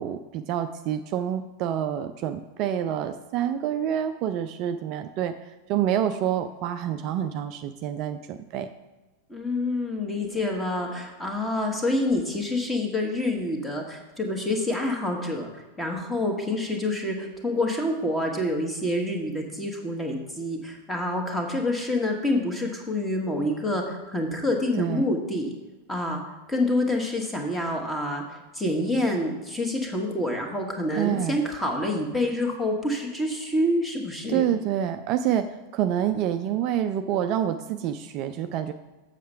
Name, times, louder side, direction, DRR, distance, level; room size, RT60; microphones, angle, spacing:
voice 1, 0.0-5.3 5.7-8.7 24.8-25.0 30.9-31.4 34.3-35.5 35.7-38.7, right 10 dB, 40° right, 8 dB, 0.4 m, -27 dB
voice 2, 9.3-25.5 25.9-26.2 26.5-34.5, left 1 dB, 10° left, 2 dB, 1.5 m, -27 dB
7.4 x 6.5 x 5.6 m, 1.2 s
figure-of-eight pair, 90°, 0 cm